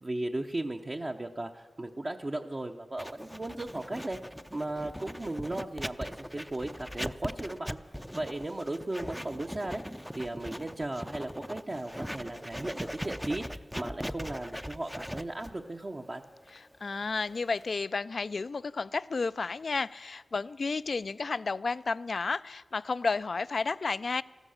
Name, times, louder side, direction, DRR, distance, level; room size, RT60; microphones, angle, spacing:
voice 1, 0.0-4.2 4.5-7.8 8.1-16.2, right 2 dB, 40° right, 2 dB, 0.8 m, -36 dB
Writing, 3.0-17.7, equal, ahead, 0.5 m, -40 dB
voice 2, 16.8-24.2, left 4 dB, 65° left, 17 dB, 0.4 m, -32 dB
14.0 x 13.5 x 6.5 m, 1.4 s
cardioid pair, 55°, 0 cm